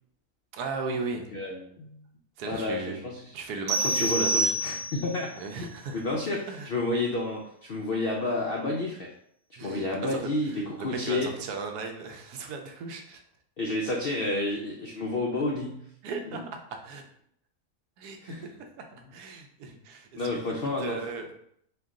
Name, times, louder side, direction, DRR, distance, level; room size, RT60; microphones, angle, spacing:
voice 1, 0.5-1.2 2.4-3.0 3.3-4.5 5.4-6.0 6.5-6.7 9.6-13.2 16.0-17.0 18.0-18.7 19.1-20.2 20.8-21.3, right 4 dB, 85° right, 4 dB, 1.2 m, -36 dB
voice 2, 1.3-2.0 2.4-3.3 3.8-5.4 5.9-9.1 9.6-11.4 13.6-15.9 16.3-16.4 18.2-18.5 19.0-19.1 20.2-21.0, left 2 dB, 75° left, -1 dB, 0.5 m, -30 dB
sound 1, 3.7-5.2, right 1 dB, 50° right, 0.7 m, -27 dB
4.5 x 2.3 x 3.6 m, 0.68 s
omnidirectional pair, 1.6 m